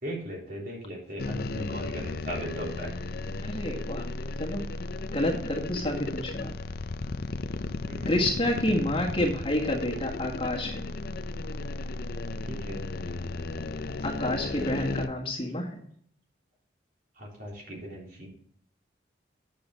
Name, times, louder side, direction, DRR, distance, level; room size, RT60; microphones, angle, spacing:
voice 1, 0.0-2.9 7.9-8.1 12.5-12.8 17.2-18.3, equal, 50° right, -2 dB, 3.5 m, -37 dB
sound 1, 1.2-15.1, left 3 dB, 55° left, 0.5 m, -34 dB
voice 2, 3.4-4.1 4.4-4.6 5.1-6.5 8.1-10.8 14.0-15.7, left 1 dB, 30° left, 0 dB, 1.6 m, -29 dB
9.7 x 6.9 x 3.9 m, 0.64 s
head